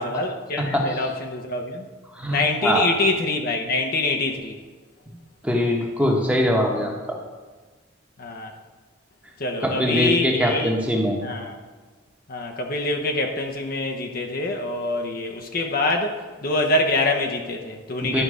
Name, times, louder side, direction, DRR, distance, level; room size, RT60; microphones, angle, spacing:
voice 1, 0.0-1.9 2.3-4.6 8.2-8.5 9.4-10.7 11.2-11.5 12.3-16.2 16.4-18.2, left 2 dB, 50° left, 2 dB, 0.7 m, -25 dB
voice 2, 0.6-1.1 2.1-2.9 5.4-7.2 9.6-11.2 18.0-18.2, equal, 5° right, 0 dB, 1.1 m, -22 dB
11.5 x 5.2 x 4.9 m, 1.4 s
head